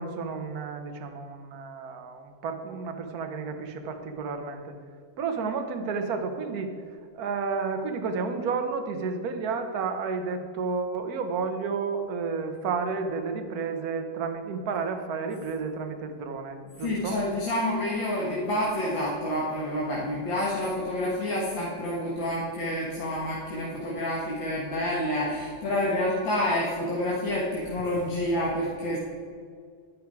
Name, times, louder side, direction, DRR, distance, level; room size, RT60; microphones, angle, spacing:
voice 1, 0.0-4.7 5.2-6.7 7.1-17.2, right 5 dB, 50° right, 6 dB, 1.4 m, -31 dB
voice 2, 16.8-29.0, left 1 dB, 65° left, -5 dB, 2.4 m, -28 dB
12.0 x 10.0 x 4.7 m, 2.2 s
omnidirectional pair, 2.3 m